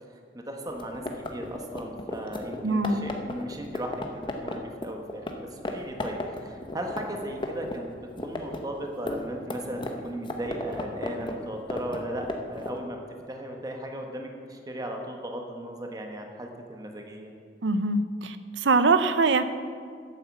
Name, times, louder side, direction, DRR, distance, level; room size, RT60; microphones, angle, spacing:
voice 1, 0.3-1.0 1.3-13.0 13.3-17.3, right 1 dB, 20° right, 2 dB, 1.1 m, -36 dB
sound 1, 0.7-5.3 5.6-5.7 6.0-12.8, left 2 dB, 25° left, 0.8 m, -34 dB
voice 2, 2.6-3.1 17.6-19.4, right 3 dB, 90° right, 11 dB, 0.6 m, -23 dB
9.3 x 7.9 x 7.1 m, 2.1 s
head